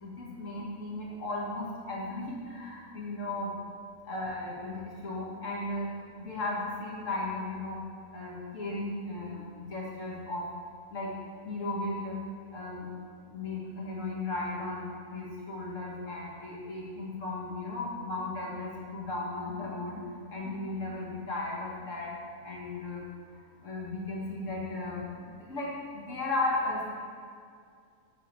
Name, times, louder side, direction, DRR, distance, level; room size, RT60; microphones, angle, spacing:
voice 1, 0.0-3.5 4.1-5.9 6.2-7.8 8.1-10.5 10.9-11.2 11.4-12.2 12.5-12.9 13.2-20.0 20.3-22.1 22.4-23.0 23.6-26.9, left 2 dB, 55° left, -3 dB, 2.0 m, -35 dB
9.6 x 4.5 x 6.6 m, 2.2 s
omnidirectional pair, 1.6 m